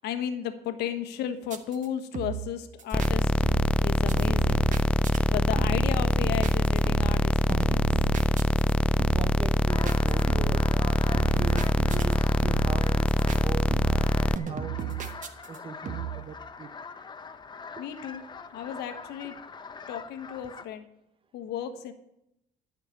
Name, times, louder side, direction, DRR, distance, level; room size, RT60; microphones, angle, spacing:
voice 1, 0.0-3.3 3.8-4.6 5.3-7.8 17.8-18.2 18.5-19.3 19.9-20.9 21.3-21.9, left 9 dB, 80° left, 8 dB, 1.3 m, -34 dB
sound 1, 1.5-1.9 2.1-2.5 2.8-3.1 3.4-3.8 4.1-5.2 5.6-6.0 6.2-7.2 7.5-8.7 9.0-9.4 9.9-10.7 11.1-12.2 12.4-12.8 13.1-13.4 13.7-14.1 14.4-15.6 15.9-16.2, right 8 dB, 50° right, 1.3 m, -34 dB
sound 2, 2.9-14.4, left 1 dB, 5° left, 0.3 m, -24 dB
voice 2, 9.1-15.1 15.5-16.7 17.8-17.9, right 5 dB, 30° right, 13 dB, 0.8 m, -40 dB
sound 3, 9.7-20.7, left 5 dB, 25° left, 0.8 m, -43 dB
12.5 x 6.0 x 8.4 m, 0.82 s
cardioid pair, 110°, 17 cm